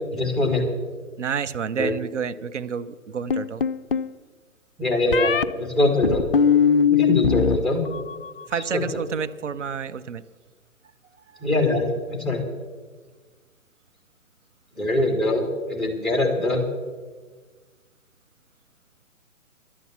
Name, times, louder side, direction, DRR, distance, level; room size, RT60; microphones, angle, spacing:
voice 1, 0.1-0.6 1.8-1.9 4.8-6.2 6.9-7.8 8.5-8.8 11.4-12.4 14.8-16.6, left 2 dB, ahead, 2 dB, 2.4 m, -23 dB
voice 2, 1.2-3.6 8.5-10.2, right 7 dB, 60° right, 12 dB, 0.8 m, -29 dB
sound 1, 3.3-4.1 5.1-5.5 6.0-7.6 7.9-8.4, left 7 dB, 45° left, 0.5 m, -20 dB
11.5 x 9.5 x 8.1 m, 1.4 s
figure-of-eight pair, 135°, 41 cm